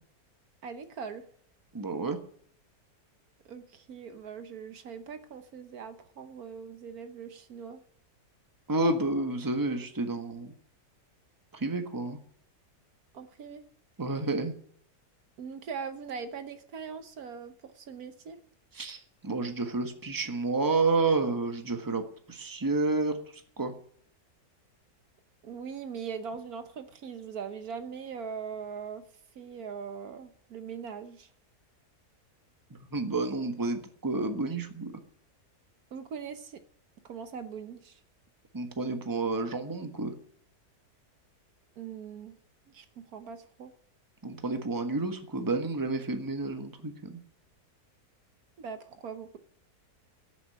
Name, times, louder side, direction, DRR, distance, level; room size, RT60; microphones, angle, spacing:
voice 1, 0.6-1.3 3.5-7.8 13.1-13.6 15.4-18.4 25.4-29.0 29.3-31.3 35.9-36.6 37.0-38.0 41.8-42.3 42.7-43.7 48.6-49.4, right 6 dB, 70° right, 9 dB, 1.4 m, -41 dB
voice 2, 1.7-2.2 8.7-10.5 11.5-12.2 14.0-14.5 18.7-22.0 22.3-23.2 23.6-23.7 32.9-35.0 38.5-40.1 44.2-47.2, right 3 dB, 15° right, 6 dB, 1.3 m, -30 dB
14.0 x 7.1 x 9.2 m, 0.62 s
omnidirectional pair, 1.7 m